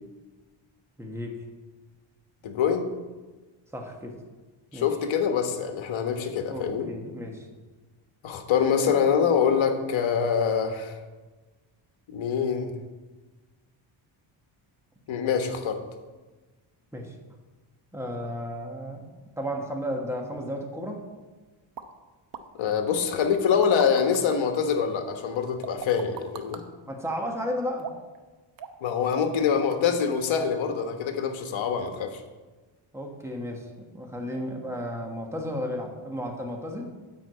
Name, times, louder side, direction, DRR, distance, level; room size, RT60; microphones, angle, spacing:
voice 1, 1.0-1.4 3.7-4.1 4.7-4.9 6.5-7.5 16.9-17.1 17.9-19.0 19.4-21.1 26.9-27.9 32.9-33.7 33.9-36.9, equal, 5° right, 2 dB, 1.3 m, -33 dB
voice 2, 2.4-2.9 4.7-6.9 8.2-11.0 12.1-12.7 15.1-15.8 22.5-26.6 28.8-32.2, left 7 dB, 65° left, 6 dB, 1.3 m, -25 dB
sound 1, 21.8-21.9 22.3-22.4 23.3-24.4 25.6-26.6 27.8-28.2 28.6-28.8 29.1-29.4 29.7-29.8, right 7 dB, 45° right, 0.8 m, -39 dB
10.0 x 4.8 x 7.8 m, 1.3 s
cardioid pair, 135°, 49 cm